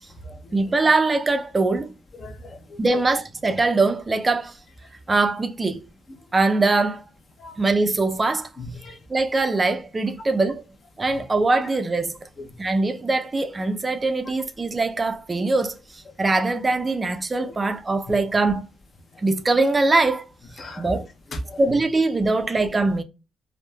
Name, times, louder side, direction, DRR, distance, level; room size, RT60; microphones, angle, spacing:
voice 1, 0.5-1.9 2.8-4.5 5.1-5.8 6.3-7.0 7.6-8.5 9.1-10.6 11.0-12.1 12.6-18.7 19.2-20.2 20.8-21.1 21.6-23.0, right 3 dB, 25° right, 0.3 m, -22 dB
voice 2, 2.2-2.8 7.4-7.6 8.6-9.0 11.1-11.2 20.6-20.9 21.3-21.8, left 1 dB, 45° left, 0.6 m, -37 dB
2.9 x 2.0 x 2.2 m
cardioid pair, 90°, 0 cm